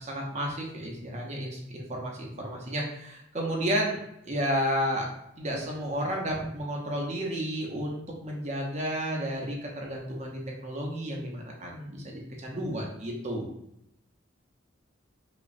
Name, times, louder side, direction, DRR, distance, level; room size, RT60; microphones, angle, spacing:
voice 1, 0.0-4.0 4.2-5.1 5.4-13.5, equal, 35° right, -1 dB, 0.8 m, -32 dB
4.9 x 2.3 x 2.6 m, 0.79 s
head